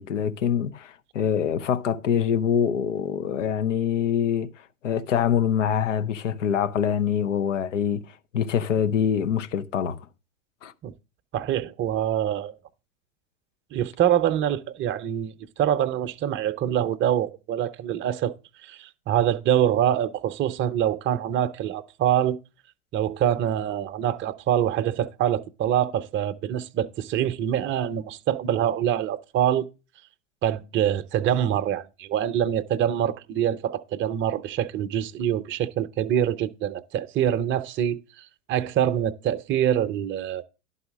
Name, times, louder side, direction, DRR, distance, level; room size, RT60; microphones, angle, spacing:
voice 1, 0.0-4.5 4.8-10.1 10.6-10.7, left 8 dB, 80° left, 0.8 m, -25 dB
voice 2, 11.3-12.6 13.7-18.3 18.6-22.4 22.9-29.7 30.4-40.4, right 10 dB, 30° right, 0.7 m, -25 dB
11.5 x 4.2 x 6.1 m
hypercardioid pair, 90°, 37 cm